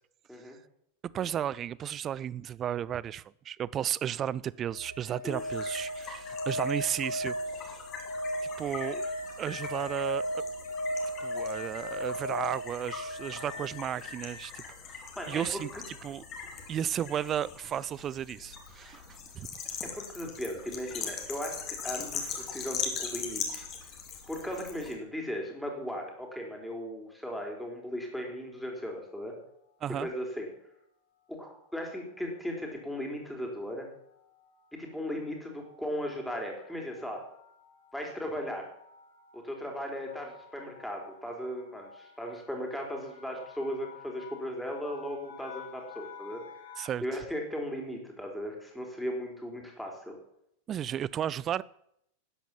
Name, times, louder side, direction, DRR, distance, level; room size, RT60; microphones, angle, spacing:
voice 1, 1.0-7.4 7.7-7.8 8.6-9.1 9.4-10.4 11.2-14.9 15.3-15.7 16.0-16.2 16.7-19.5 29.8-30.1 46.8-47.0 50.7-51.6, right 10 dB, 30° right, 0.5 m, -34 dB
sound 1, 4.7-14.5 16.8-16.9, equal, 75° left, 1.2 m, -36 dB
sound 2, 5.3-24.9, left 6 dB, 30° left, 3.3 m, -41 dB
voice 2, 15.2-15.8 19.8-23.7 24.3-29.4 30.0-30.5 31.3-33.9 34.8-37.2 37.9-38.7 39.3-46.4 47.0-50.2, equal, ahead, 4.2 m, -37 dB
sound 3, 28.8-29.2 30.0-30.4 30.7-30.9 31.1-46.9, left 6 dB, 55° left, 3.0 m, -53 dB
12.5 x 10.0 x 7.2 m
figure-of-eight pair, 90°, 0 cm